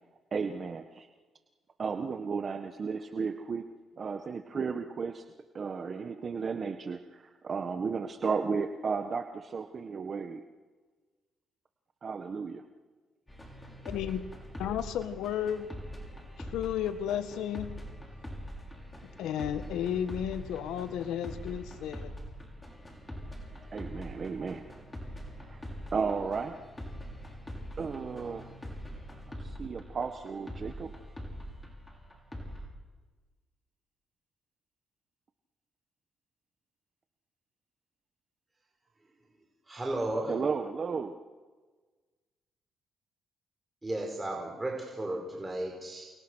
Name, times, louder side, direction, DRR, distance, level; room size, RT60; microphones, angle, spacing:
voice 1, 0.3-1.1 1.8-3.6 4.0-5.2 5.5-10.4 12.0-12.6 23.7-24.6 25.5-25.6 25.9-26.5 27.8-28.4 29.4-30.9 40.3-41.1, right 5 dB, 45° right, 7 dB, 1.5 m, -34 dB
sound 1, 13.3-32.7, equal, 10° left, 6.4 m, -43 dB
voice 2, 13.8-14.2 14.6-15.7 16.4-17.7 19.2-22.1, left 10 dB, 90° left, 10 dB, 1.8 m, -33 dB
voice 3, 39.7-40.3 43.8-46.0, right 1 dB, 15° right, 0 dB, 5.3 m, -34 dB
29.0 x 28.5 x 6.5 m, 1.4 s
cardioid pair, 90°, 0 cm